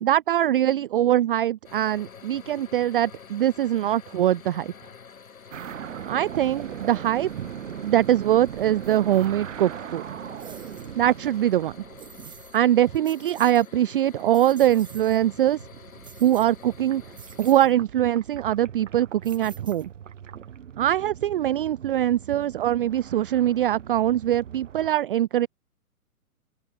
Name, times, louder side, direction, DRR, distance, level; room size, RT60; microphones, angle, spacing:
voice 1, 0.0-4.7 6.1-7.5 7.8-10.1 11.0-11.7 12.5-15.6 16.2-17.0 17.4-19.9 20.8-25.5, right 12 dB, 35° right, 0.7 m, -22 dB
sound 1, 1.6-17.5, left 6 dB, 65° left, 7.1 m, -48 dB
sound 2, 5.5-12.6 14.6-24.9, right 9 dB, 55° right, 3.6 m, -40 dB
sound 3, 10.4-10.9 12.0-12.6 12.9-13.7 14.1-15.2 16.0-16.7 17.1-17.7 19.2-20.1, right 6 dB, 10° right, 6.6 m, -48 dB
open air
figure-of-eight pair, 130°, 44 cm